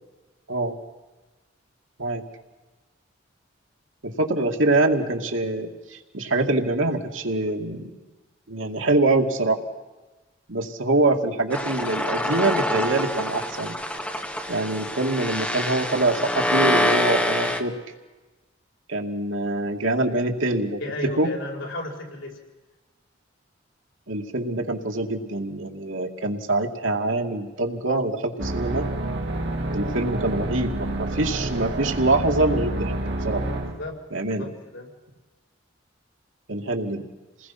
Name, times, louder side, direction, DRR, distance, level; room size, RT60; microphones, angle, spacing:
voice 1, 4.0-8.0 8.5-9.6 10.5-13.7 14.5-17.7 18.9-20.8 21.2-21.3 24.1-28.9 29.7-32.9 33.2-33.4 34.1-34.5 36.5-37.1, right 2 dB, 90° right, 3 dB, 2.3 m, -24 dB
sound 1, 11.5-17.6, left 1 dB, 5° left, 1.3 m, -25 dB
voice 2, 20.8-22.4 33.6-33.9 34.4-34.9, left 1 dB, 80° left, 0 dB, 4.8 m, -33 dB
sound 2, 28.4-33.8, right 1 dB, 60° right, 2.4 m, -28 dB
28.0 x 20.0 x 6.0 m, 1.2 s
head